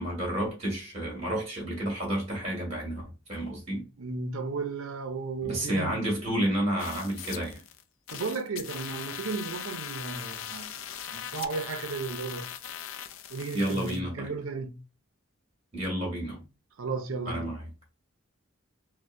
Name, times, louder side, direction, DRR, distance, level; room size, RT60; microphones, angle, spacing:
voice 1, 0.0-3.0 3.3-3.9 5.4-7.6 13.5-14.3 15.7-16.4 17.3-17.6, right 1 dB, 30° right, 1.9 m, -30 dB
voice 2, 4.0-6.0 8.1-10.8 11.1-12.5 13.3-14.8 16.8-17.5, right 4 dB, 80° right, 0.6 m, -34 dB
sound 1, 6.8-7.8 8.1-14.0, left 9 dB, 70° left, 0.4 m, -40 dB
4.3 x 2.1 x 2.6 m
head